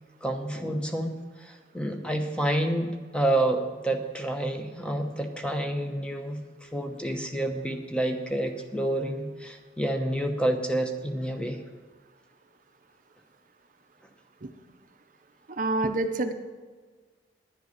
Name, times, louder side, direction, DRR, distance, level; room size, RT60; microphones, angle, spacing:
voice 1, 0.2-11.6, right 1 dB, 5° left, 4 dB, 0.9 m, -29 dB
voice 2, 15.5-16.3, right 2 dB, 45° right, 7 dB, 0.6 m, -27 dB
10.5 x 8.0 x 6.5 m, 1.4 s
head